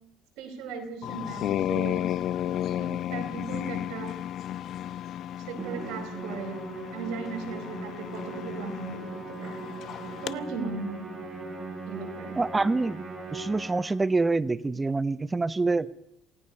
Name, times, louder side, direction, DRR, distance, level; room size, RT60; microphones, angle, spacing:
voice 1, 0.4-2.0 2.8-4.1 5.3-6.6 6.9-9.6 10.2-11.1 11.9-12.4, right 4 dB, 80° right, 6 dB, 4.5 m, -37 dB
sound 1, 1.0-10.3, left 11 dB, 65° left, 0.7 m, -33 dB
Musical instrument, 5.6-14.1, right 3 dB, 40° right, 5.8 m, -39 dB
voice 2, 12.4-13.0 13.3-16.0, right 3 dB, 20° right, 17 dB, 0.8 m, -26 dB
27.5 x 17.5 x 5.3 m, 0.76 s
supercardioid pair, 85°, 0 cm